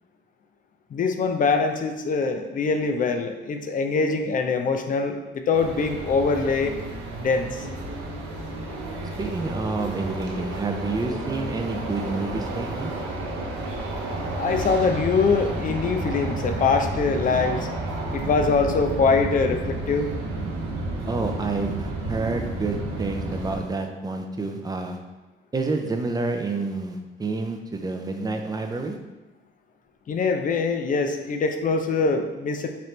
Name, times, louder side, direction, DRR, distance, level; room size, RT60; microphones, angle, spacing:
voice 1, 0.9-6.8 7.2-7.7 14.4-17.7 18.1-20.1 30.1-32.7, left 4 dB, 40° left, 6 dB, 0.4 m, -23 dB
sound 1, 5.5-23.6, right 2 dB, 85° right, 0.8 m, -31 dB
voice 2, 9.2-12.9 21.1-25.0 25.5-29.0, right 3 dB, 20° right, 4 dB, 0.4 m, -29 dB
4.4 x 2.5 x 3.2 m, 1.1 s
cardioid pair, 90°, 20 cm